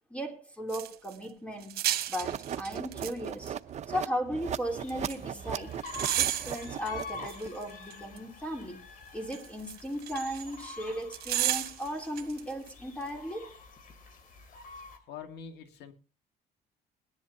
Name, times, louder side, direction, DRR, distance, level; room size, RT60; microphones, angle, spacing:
voice 1, 0.1-1.8 2.1-3.6 3.9-5.8 6.1-8.8 9.1-13.6, equal, 5° left, 3.0 m, -36 dB
sound 1, 0.7-1.1 1.6-3.1 3.4-3.5 4.9-5.2 5.9-8.2 9.3-10.7 11.1-12.4 12.7-12.8, right 12 dB, 70° right, 1.4 m, -32 dB
sound 2, 2.2-7.5, right 9 dB, 45° right, 0.7 m, -38 dB
sound 3, 4.4-15.0, left 4 dB, 55° left, 2.7 m, -47 dB
voice 2, 14.3-14.7 15.1-15.9, left 7 dB, 80° left, 1.9 m, -46 dB
22.0 x 10.5 x 2.7 m
cardioid pair, 110°, 17 cm